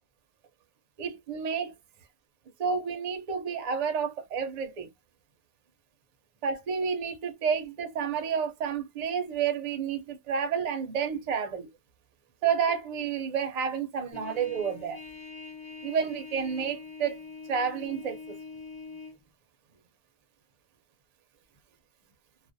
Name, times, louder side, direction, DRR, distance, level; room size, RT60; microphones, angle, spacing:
voice 1, 1.0-1.7 2.6-4.9 6.4-11.7 12.4-15.0 15.8-17.2 17.5-18.4, right 6 dB, 50° right, 0.5 m, -30 dB
Trumpet, 14.1-19.2, left 4 dB, 5° left, 0.6 m, -44 dB
2.4 x 2.1 x 2.4 m
omnidirectional pair, 1.2 m